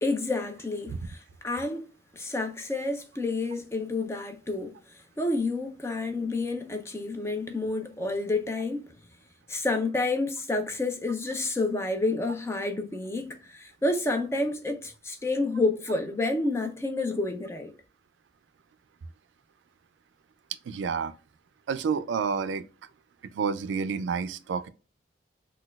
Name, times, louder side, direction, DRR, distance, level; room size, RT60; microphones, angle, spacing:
voice 1, 0.0-1.9 2.1-4.7 5.2-8.9 9.5-17.7, left 2 dB, 15° left, 0.4 m, -29 dB
voice 2, 20.7-21.1 21.7-22.6 23.3-24.7, right 6 dB, 85° right, 0.3 m, -29 dB
4.0 x 2.2 x 2.3 m
head